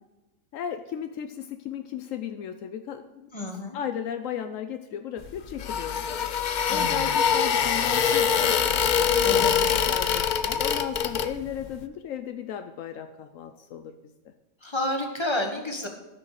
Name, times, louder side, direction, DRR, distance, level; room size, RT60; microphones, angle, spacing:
voice 1, 0.5-3.3 3.7-6.2 6.7-8.7 9.3-13.9 14.2-14.3, left 9 dB, 80° left, 8 dB, 1.0 m, -35 dB
voice 2, 3.3-3.8 6.7-7.2 9.2-9.6 14.6-15.9, left 1 dB, 20° left, 3 dB, 1.4 m, -30 dB
sound 1, 5.2-11.7, left 7 dB, 55° left, 0.5 m, -24 dB
13.0 x 6.2 x 6.5 m, 1.0 s
omnidirectional pair, 1.4 m